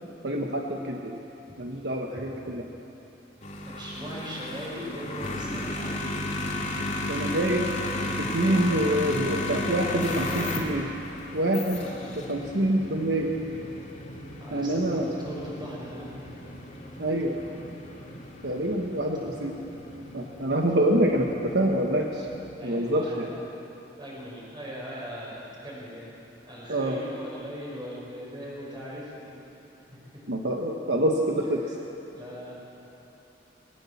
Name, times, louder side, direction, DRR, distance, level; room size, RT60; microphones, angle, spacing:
voice 1, 0.2-1.2 1.6-2.6 7.1-7.7 8.2-10.9 11.3-11.9 12.1-13.3 14.5-15.1 17.0-17.4 18.4-19.6 20.1-22.3 22.6-23.3 26.7-27.0 30.3-31.7, right 1 dB, 65° right, 1 dB, 1.3 m, -26 dB
sound 1, 3.4-22.5, left 2 dB, 40° left, 2.6 m, -35 dB
voice 2, 3.7-6.9 14.4-16.3 22.6-23.4 24.0-26.1 26.5-29.4 31.6-31.7 32.1-32.7, equal, 25° right, -5 dB, 6.3 m, -40 dB
20.5 x 18.0 x 7.3 m, 3.0 s
head